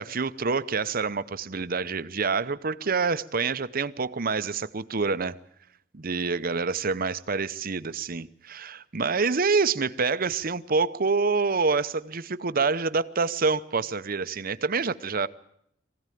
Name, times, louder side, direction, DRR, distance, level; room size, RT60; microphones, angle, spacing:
voice 1, 0.0-5.4 5.9-15.3, right 4 dB, 45° right, 0.8 m, -27 dB
22.5 x 16.0 x 9.2 m
head